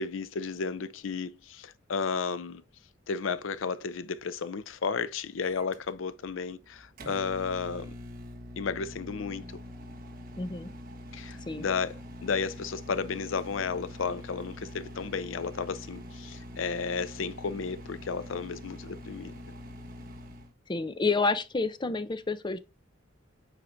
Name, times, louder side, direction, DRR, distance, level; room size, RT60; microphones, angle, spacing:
voice 1, 0.0-2.6 3.1-7.9 8.6-9.4 11.1-12.0 12.2-19.3, left 5 dB, 80° left, 0.5 m, -33 dB
Microwave oven, 5.4-20.5, left 1 dB, 50° right, 1.3 m, -44 dB
voice 2, 10.4-10.7 11.5-11.6 20.7-22.6, left 3 dB, 25° left, 0.5 m, -29 dB
7.7 x 4.8 x 2.6 m
head